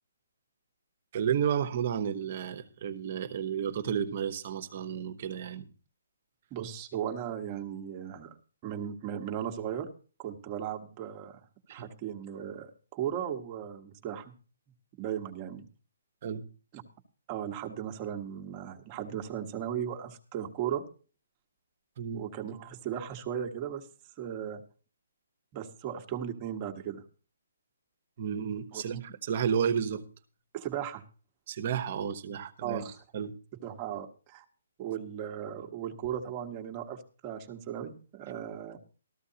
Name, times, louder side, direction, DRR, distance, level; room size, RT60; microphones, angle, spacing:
voice 1, 1.1-5.7 11.7-11.9 16.2-16.5 22.0-22.2 28.2-30.0 31.5-32.8 33.1-33.3, right 8 dB, 40° right, 1.1 m, -32 dB
voice 2, 6.5-8.4 8.6-9.9 10.2-11.4 11.7-14.3 15.0-15.6 17.3-20.8 22.1-23.9 24.2-24.6 25.5-27.0 28.7-29.0 30.5-31.0 32.6-33.0 33.6-34.4 34.8-38.8, right 9 dB, 25° right, 1.3 m, -36 dB
14.0 x 13.5 x 2.8 m
hypercardioid pair, 160°, 0 cm